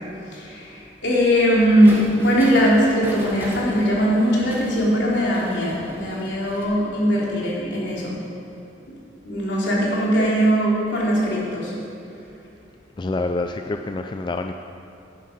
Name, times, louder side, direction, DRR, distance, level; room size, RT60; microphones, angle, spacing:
voice 1, 0.3-8.2 9.2-11.7, equal, 75° left, -5 dB, 3.1 m, -20 dB
sound 1, 1.8-6.6, equal, 10° right, 1.5 m, -38 dB
voice 2, 13.0-14.5, left 2 dB, 25° left, 6 dB, 0.3 m, -27 dB
11.5 x 10.5 x 5.2 m, 2.8 s
head